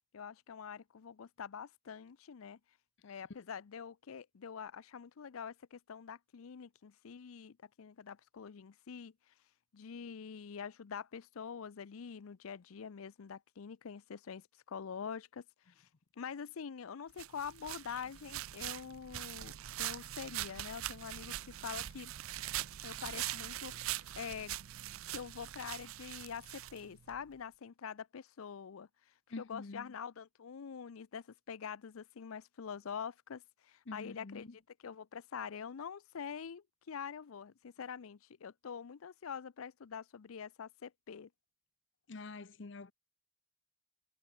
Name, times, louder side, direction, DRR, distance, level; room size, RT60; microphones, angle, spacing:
voice 1, 0.1-2.6 3.0-9.3 9.7-15.9 16.2-22.1 22.8-24.6 25.1-34.5 34.8-41.3, left 7 dB, 90° left, 0.5 m, -45 dB
sound 1, 17.2-27.2, right 13 dB, 85° right, 0.5 m, -42 dB
voice 2, 29.3-29.9 33.9-34.6 42.1-42.9, left 3 dB, 60° left, 0.7 m, -46 dB
head